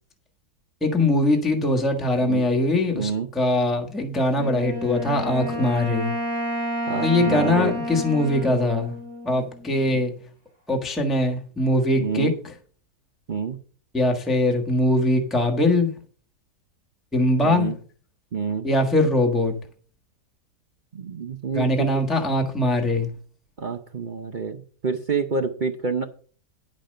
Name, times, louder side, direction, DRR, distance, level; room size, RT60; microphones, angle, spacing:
voice 1, 0.8-6.1 7.0-8.9 9.2-10.1 10.7-12.5 13.9-15.9 17.1-17.7 18.6-19.5 21.5-23.1, left 1 dB, ahead, 1.3 m, -22 dB
voice 2, 2.9-3.3 5.5-5.7 6.9-7.8 9.9-10.0 12.0-12.3 13.3-13.6 17.4-17.7 18.3-18.7 20.9-21.9 23.6-26.1, right 5 dB, 55° right, 0.5 m, -28 dB
Wind instrument woodwind instrument, 4.3-9.8, equal, 45° left, 2.7 m, -30 dB
10.5 x 5.3 x 6.5 m
omnidirectional pair, 1.8 m